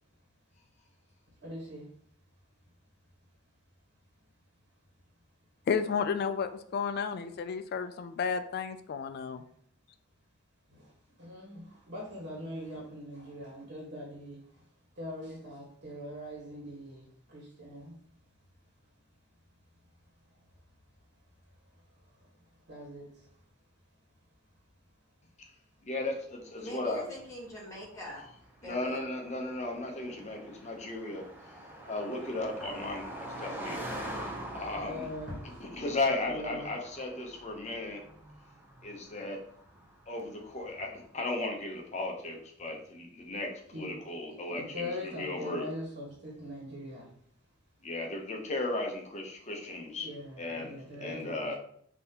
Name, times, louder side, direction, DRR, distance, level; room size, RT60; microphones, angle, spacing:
voice 1, 1.4-2.0 2.6-2.7 7.3-7.4 10.7-18.3 18.6-18.9 19.5-23.5 24.1-24.7 25.0-25.1 25.7-25.8 34.4-35.7 36.3-36.7 43.7-44.0 44.3-47.2 50.0-51.5, left 1 dB, 55° right, -4 dB, 1.4 m, -43 dB
voice 2, 5.7-9.4, left 6 dB, 50° left, 10 dB, 0.3 m, -32 dB
voice 3, 25.8-27.1 28.6-31.2 31.9-33.8 34.5-35.1 35.6-38.0 38.8-39.4 40.1-45.7 47.8-50.1 50.4-51.5, left 2 dB, 35° left, 1 dB, 0.7 m, -35 dB
voice 4, 26.6-28.2 28.6-29.0, equal, 15° left, -5 dB, 1.4 m, -44 dB
Car passing by, 27.3-41.0, right 1 dB, 10° right, 0.6 m, -45 dB
5.3 x 2.8 x 2.9 m, 0.65 s
head